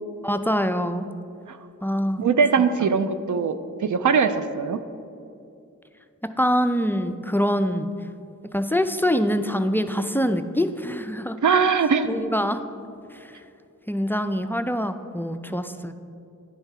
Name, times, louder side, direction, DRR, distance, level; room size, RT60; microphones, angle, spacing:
voice 1, 0.2-1.1 1.8-2.3 2.8-2.9 6.4-7.9 8.5-11.4 12.0-12.6 13.9-15.9, equal, 5° left, 8 dB, 0.4 m, -24 dB
voice 2, 2.2-3.6 3.8-4.8 11.4-12.1, right 5 dB, 65° right, 10 dB, 0.5 m, -21 dB
10.5 x 3.4 x 5.7 m, 2.6 s
cardioid pair, 40°, 32 cm